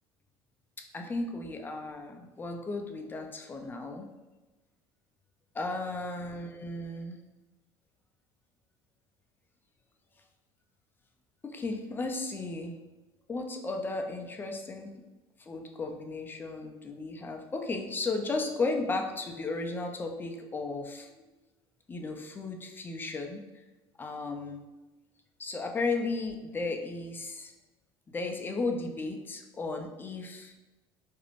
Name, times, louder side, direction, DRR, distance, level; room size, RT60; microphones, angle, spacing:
voice 1, 0.8-4.1 5.5-7.2 11.4-12.7 13.3-14.9 15.4-21.2 21.9-23.4 24.0-24.6 25.4-27.5 28.1-30.6, left 3 dB, 20° left, 3 dB, 0.3 m, -35 dB
2.5 x 2.0 x 2.9 m, 1.1 s
supercardioid pair, 110°, 11 cm